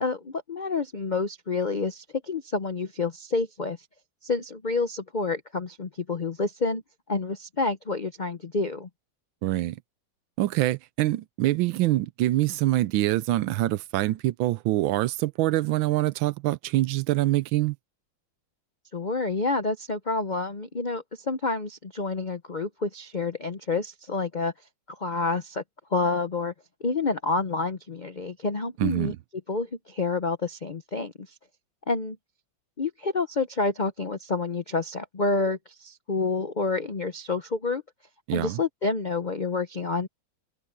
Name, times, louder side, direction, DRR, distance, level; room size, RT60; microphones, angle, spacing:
voice 1, 0.0-3.8 4.2-6.8 7.1-8.9 18.9-24.5 24.9-25.6 25.9-26.5 26.8-29.1 29.5-31.3 31.9-32.2 32.8-37.8 38.3-40.1, left 3 dB, 60° left, 0.4 m, -28 dB
voice 2, 9.4-9.8 10.4-17.8 28.8-29.2 38.3-38.6, right 16 dB, 80° right, 1.4 m, -25 dB
omnidirectional pair, 2.1 m